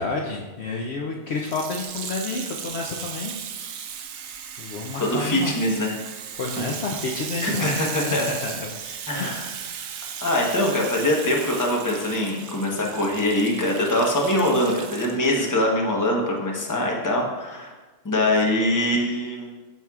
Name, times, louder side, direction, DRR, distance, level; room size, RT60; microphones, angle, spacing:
voice 1, 0.0-3.3 4.6-5.5 6.4-8.7 9.1-9.4, left 3 dB, 60° left, 0 dB, 0.8 m, -30 dB
Water tap faucet / Sink (filling or washing), 1.4-15.4 16.1-16.2, right 7 dB, 85° right, 1.0 m, -36 dB
voice 2, 5.0-5.9 7.4-8.3 9.1-9.4 10.2-17.7 18.0-19.5, left 1 dB, 15° left, -1 dB, 0.9 m, -23 dB
12.0 x 4.5 x 2.4 m, 1.2 s
omnidirectional pair, 1.4 m